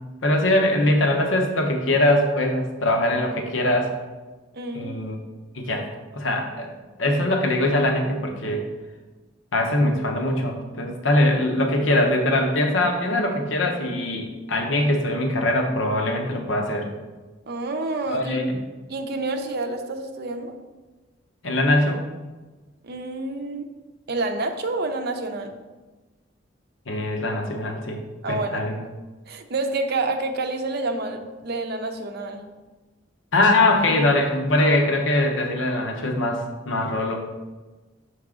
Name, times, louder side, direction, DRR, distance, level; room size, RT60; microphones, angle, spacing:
voice 1, 0.2-3.9 4.7-5.2 5.5-5.9 6.1-6.7 7.0-8.7 9.5-16.9 18.1-18.6 21.4-22.1 26.9-28.0 28.3-28.8 33.3-37.4, left 1 dB, 75° left, 2 dB, 0.9 m, -22 dB
voice 2, 4.5-4.9 17.5-18.4 18.9-20.6 22.8-23.7 24.1-25.5 28.2-28.6 29.3-32.4, right 2 dB, 55° right, 5 dB, 0.6 m, -28 dB
5.8 x 4.7 x 3.7 m, 1.2 s
head